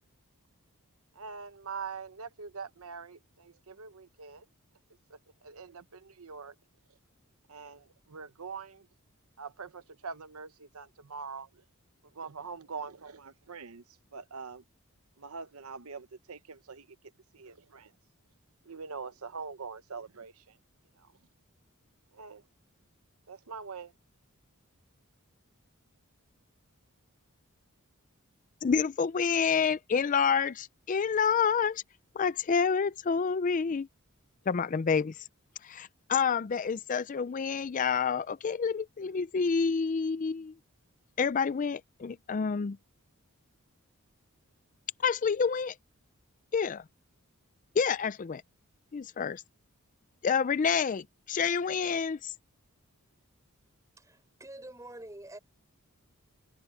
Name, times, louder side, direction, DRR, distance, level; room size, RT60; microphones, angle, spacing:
voice 1, 1.1-4.5 5.1-6.5 7.5-8.9 9.4-11.6 12.1-13.8 14.1-14.6 15.2-16.9 17.3-17.9 18.6-20.6 21.0-21.1 22.1-22.4 23.3-23.9, right 5 dB, 75° right, 0.9 m, -43 dB
voice 2, 28.6-31.8 32.2-33.9 34.5-35.2 35.6-40.5 41.2-42.8 45.0-45.7 46.5-46.8 47.8-48.4 48.9-49.4 50.2-52.3, left 6 dB, 35° left, 0.4 m, -28 dB
voice 3, 54.0-55.4, right 1 dB, 15° right, 6.3 m, -46 dB
head